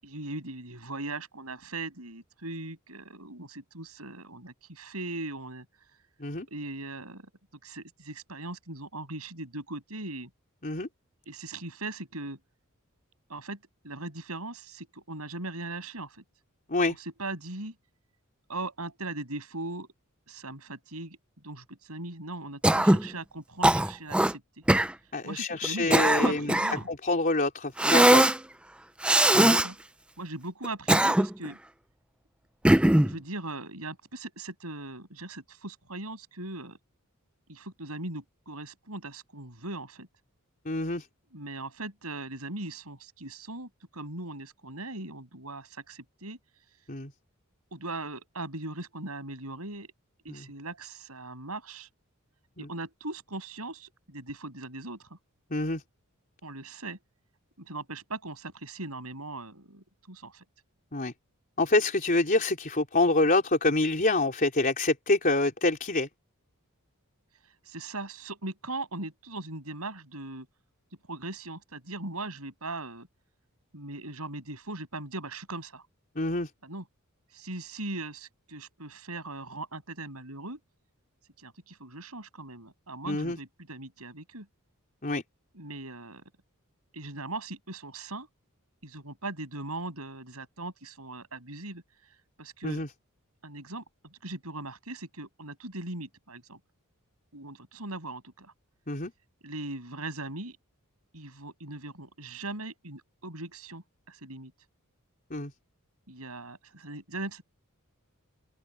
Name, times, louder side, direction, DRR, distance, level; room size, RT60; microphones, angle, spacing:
voice 1, 0.0-5.6 6.5-7.3 7.6-10.3 11.3-12.4 13.3-13.6 13.8-16.2 17.2-17.7 18.5-19.9 20.3-21.2 21.4-24.4 25.2-26.9 29.3-29.8 30.2-31.6 33.0-36.8 37.5-40.1 41.3-46.4 47.7-49.9 50.2-51.9 52.6-55.2 56.4-57.0 57.6-60.4 67.6-70.5 71.1-73.1 73.7-75.8 76.6-76.8 77.3-80.6 81.4-84.5 85.5-86.2 86.9-88.3 88.8-91.8 92.4-92.8 93.4-93.8 94.1-96.6 97.3-98.5 99.4-100.6 101.1-104.5 106.1-107.4, right 2 dB, 80° right, 8.0 m, -39 dB
Cough, 22.6-23.1 23.6-24.3 24.7-24.9 25.6-26.8 27.8-28.4 29.0-29.7 30.6-31.5 32.6-33.1, right 1 dB, 5° right, 0.5 m, -20 dB
voice 2, 25.1-26.6 26.9-28.3 29.3-29.6 40.7-41.1 46.9-47.1 50.3-50.5 52.6-52.7 55.5-55.8 60.9-61.1 61.6-66.1 76.2-76.5 83.0-83.4 85.0-85.2 92.6-92.9 98.9-99.1 105.3-105.5, left 2 dB, 40° left, 4.0 m, -26 dB
open air
head